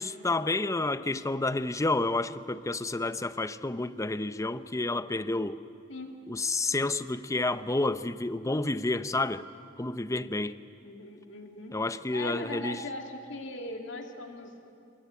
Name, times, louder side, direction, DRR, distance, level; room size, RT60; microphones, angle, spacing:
voice 1, 0.0-5.6 6.3-9.4 9.8-10.6 11.7-12.8, left 2 dB, 15° left, 0.6 m, -30 dB
voice 2, 10.8-11.7 12.1-14.5, left 2 dB, 65° left, 2.6 m, -39 dB
23.0 x 21.0 x 9.5 m
head